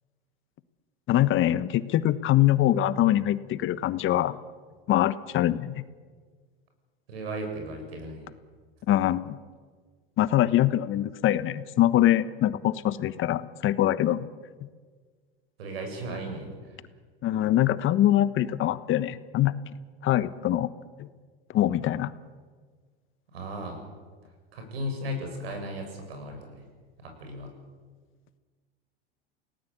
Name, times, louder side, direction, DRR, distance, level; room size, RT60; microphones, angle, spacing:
voice 1, 1.1-4.4 4.9-5.8 8.9-9.4 10.2-14.3 17.2-19.5 20.0-20.7 21.0-21.1 21.5-22.1, left 13 dB, 40° left, 15 dB, 1.3 m, -23 dB
voice 2, 7.1-8.3 15.6-16.8 23.3-23.8 24.5-26.6 27.0-27.5, equal, 75° right, 4 dB, 7.9 m, -36 dB
29.5 x 18.5 x 8.3 m, 1.5 s
hypercardioid pair, 90°, 30 cm